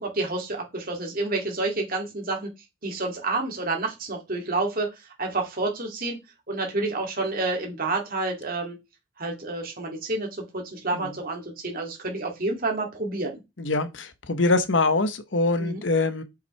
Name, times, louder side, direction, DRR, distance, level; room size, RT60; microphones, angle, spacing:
voice 1, 0.0-2.5 2.8-4.9 5.2-6.2 6.5-8.8 9.2-13.4 15.6-15.8, right 2 dB, 50° right, 2.7 m, -29 dB
voice 2, 13.6-16.2, left 3 dB, 75° left, 1.0 m, -24 dB
7.5 x 5.7 x 3.4 m
head